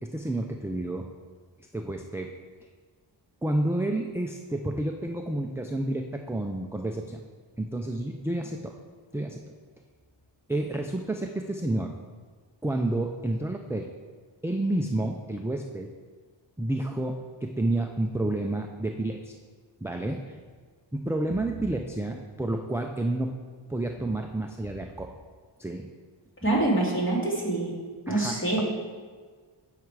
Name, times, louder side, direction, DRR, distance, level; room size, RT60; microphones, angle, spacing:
voice 1, 0.0-1.1 1.7-2.3 3.4-7.2 7.6-8.7 9.1-9.4 10.5-12.0 12.6-13.9 14.4-15.9 16.6-19.3 19.8-20.4 20.9-23.3 23.7-25.1 25.6-25.9 28.1-28.6, right 1 dB, 5° right, 2 dB, 0.4 m, -30 dB
voice 2, 26.4-27.7 28.1-28.6, right 2 dB, 25° left, -4 dB, 2.5 m, -25 dB
10.5 x 7.6 x 4.7 m, 1.5 s
wide cardioid pair, 175°, 48 cm